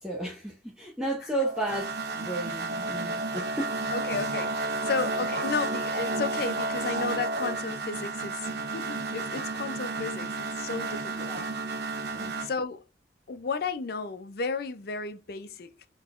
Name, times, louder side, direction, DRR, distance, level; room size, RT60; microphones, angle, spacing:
voice 1, 0.0-3.7 11.3-11.4 12.1-12.3, right 1 dB, 5° right, 0.8 m, -33 dB
sound 1, 1.4-12.5, right 3 dB, 65° right, 0.9 m, -32 dB
voice 2, 3.9-11.3 12.4-12.8 13.3-15.9, left 4 dB, 60° left, 0.5 m, -33 dB
3.9 x 3.7 x 2.5 m
head